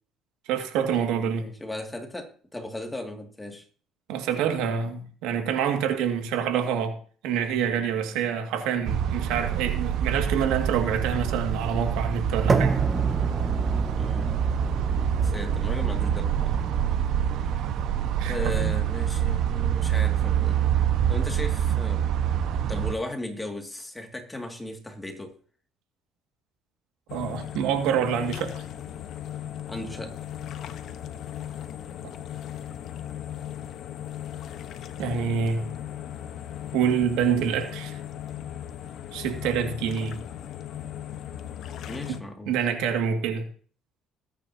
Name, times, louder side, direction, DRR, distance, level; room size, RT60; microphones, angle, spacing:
voice 1, 0.5-1.5 4.1-7.0 7.2-12.8 18.2-18.7 27.1-28.7 35.0-35.7 36.7-38.0 39.1-40.2 42.1-43.5, right 7 dB, 85° right, 2.1 m, -27 dB
voice 2, 1.2-3.6 14.0-14.3 15.2-16.6 18.2-20.6 21.1-22.1 22.7-25.3 29.7-30.1 41.9-42.6, left 1 dB, 10° left, 2.3 m, -36 dB
sound 1, 8.8-22.9, right 9 dB, 65° right, 1.3 m, -26 dB
sound 2, 12.5-20.5, right 4 dB, 25° right, 1.4 m, -32 dB
sound 3, 27.1-42.2, left 10 dB, 60° left, 1.1 m, -37 dB
21.0 x 9.4 x 2.9 m
cardioid pair, 115°, 0 cm